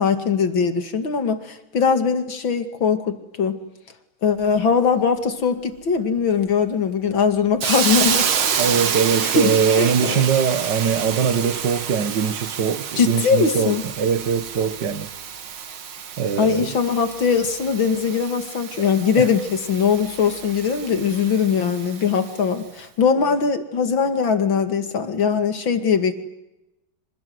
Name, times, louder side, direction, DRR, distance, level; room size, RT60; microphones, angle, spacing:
voice 1, 0.0-3.6 4.2-8.4 9.2-10.3 13.0-13.8 16.4-26.1, left 6 dB, 70° left, 3.1 m, -21 dB
Hiss, 7.6-22.4, right 7 dB, 80° right, 2.5 m, -28 dB
voice 2, 8.6-15.1 16.2-16.8 19.2-19.3, right 7 dB, 60° right, 1.8 m, -22 dB
27.5 x 27.5 x 7.9 m
omnidirectional pair, 2.2 m